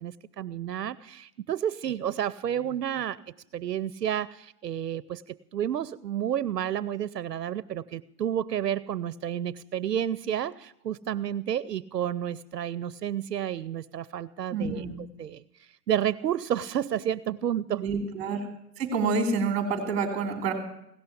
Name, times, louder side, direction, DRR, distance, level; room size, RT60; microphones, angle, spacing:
voice 1, 0.0-3.2 3.5-5.2 5.5-14.8 15.2-15.4 15.9-17.9, right 10 dB, 75° right, 18 dB, 0.7 m, -30 dB
voice 2, 14.5-14.9 17.8-18.5 18.8-20.5, right 4 dB, 15° right, 6 dB, 2.7 m, -28 dB
16.5 x 6.8 x 9.8 m, 0.78 s
hypercardioid pair, 155°, 49 cm